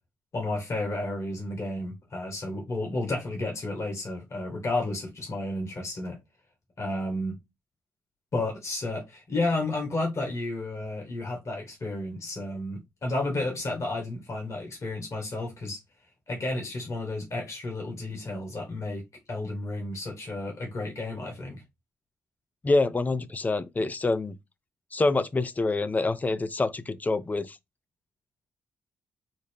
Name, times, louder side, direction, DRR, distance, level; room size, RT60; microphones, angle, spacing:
voice 1, 0.3-6.2 6.8-7.4 8.3-15.8 16.3-19.0 19.3-21.6, left 2 dB, 55° left, 1.7 m, -32 dB
voice 2, 22.6-24.4 24.9-27.6, left 3 dB, 25° left, 0.5 m, -26 dB
4.0 x 2.1 x 3.5 m
hypercardioid pair, 50°, 6 cm